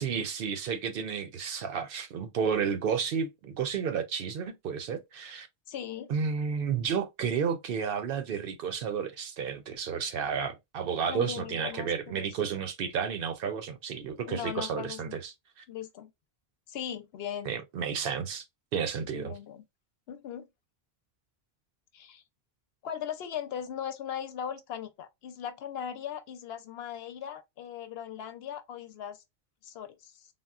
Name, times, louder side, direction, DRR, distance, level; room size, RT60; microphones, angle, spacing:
voice 1, 0.0-5.5 6.1-15.6 17.5-18.4 18.7-19.3, right 6 dB, 65° right, 0.7 m, -32 dB
voice 2, 5.7-6.1 11.1-12.3 14.3-15.2 15.7-16.1 16.7-17.6 19.1-19.6 20.1-20.5 21.9-22.2 22.8-29.2 29.6-30.3, left 9 dB, 75° left, 0.8 m, -38 dB
3.6 x 2.1 x 2.3 m
omnidirectional pair, 1.1 m